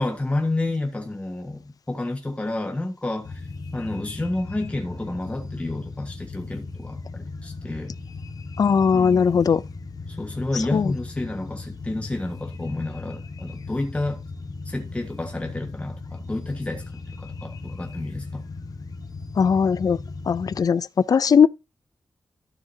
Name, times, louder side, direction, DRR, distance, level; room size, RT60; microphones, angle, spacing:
voice 1, 0.0-3.5 3.7-7.9 8.9-9.3 10.1-14.2 14.6-16.8 17.2-18.4, left 2 dB, 15° left, 1.5 m, -30 dB
Flies Aboard, 3.2-20.6, left 3 dB, 70° left, 1.3 m, -37 dB
voice 2, 8.6-9.6 10.7-10.9 19.4-20.0 20.3-21.5, left 6 dB, 55° left, 0.4 m, -19 dB
13.0 x 6.3 x 2.7 m
wide cardioid pair, 125°, 8 cm